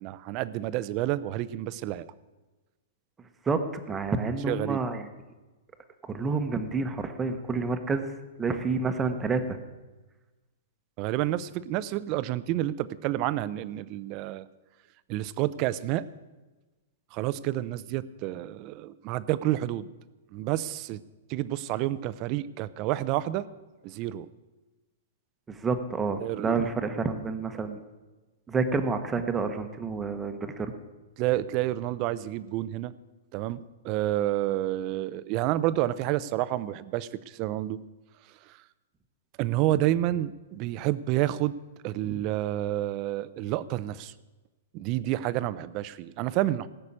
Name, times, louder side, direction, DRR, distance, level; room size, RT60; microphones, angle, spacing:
voice 1, 0.0-2.1 4.5-4.8 11.0-14.5 15.1-16.0 17.1-19.9 20.3-21.0 21.3-23.5 23.8-24.3 26.2-26.6 31.2-32.9 33.3-37.8 38.5-38.6 39.4-41.5 41.8-44.1 44.7-46.7, right 14 dB, 30° right, 15 dB, 0.6 m, -29 dB
voice 2, 3.9-5.1 6.0-8.1 8.4-9.6 25.5-27.8 28.5-30.7 42.0-42.2, right 4 dB, 10° right, 7 dB, 1.1 m, -29 dB
18.5 x 6.7 x 8.7 m, 1.2 s
hypercardioid pair, 160°, 0 cm